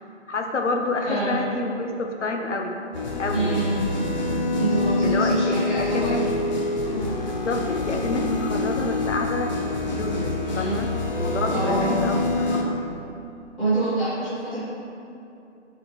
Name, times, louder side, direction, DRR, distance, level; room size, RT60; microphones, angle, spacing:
voice 1, 0.3-2.8 3.2-3.8 5.0-6.2 7.2-9.5 9.9-10.9 11.1-12.8, left 2 dB, 70° left, 3 dB, 1.0 m, -28 dB
voice 2, 1.0-1.4 3.3-3.7 4.6-6.2 10.5-10.7 11.5-11.9 13.6-14.6, right 2 dB, ahead, -16 dB, 0.5 m, -26 dB
sound 1, 2.9-12.6, left 2 dB, 35° left, 0.7 m, -26 dB
8.8 x 4.6 x 3.3 m, 2.8 s
figure-of-eight pair, 140°, 37 cm